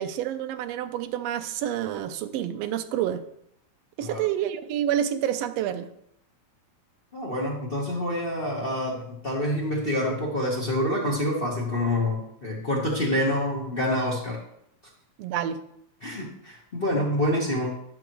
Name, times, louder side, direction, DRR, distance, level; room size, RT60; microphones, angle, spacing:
voice 1, 0.0-3.2 4.0-5.9 15.2-15.6, right 10 dB, 75° right, 9 dB, 1.5 m, -28 dB
voice 2, 7.1-14.4 16.0-17.7, left 1 dB, 65° left, -4 dB, 0.5 m, -27 dB
11.5 x 6.3 x 3.0 m, 0.74 s
omnidirectional pair, 3.3 m